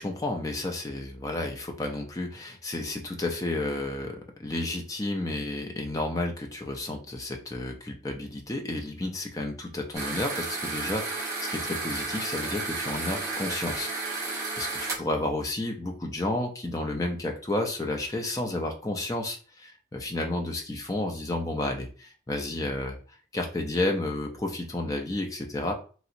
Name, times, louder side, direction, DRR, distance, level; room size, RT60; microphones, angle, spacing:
voice 1, 0.0-23.0 23.3-25.7, left 2 dB, 20° left, 2 dB, 0.5 m, -31 dB
sound 1, 9.9-15.0, right 3 dB, 20° right, 1.0 m, -32 dB
3.0 x 2.8 x 2.5 m, 0.39 s
head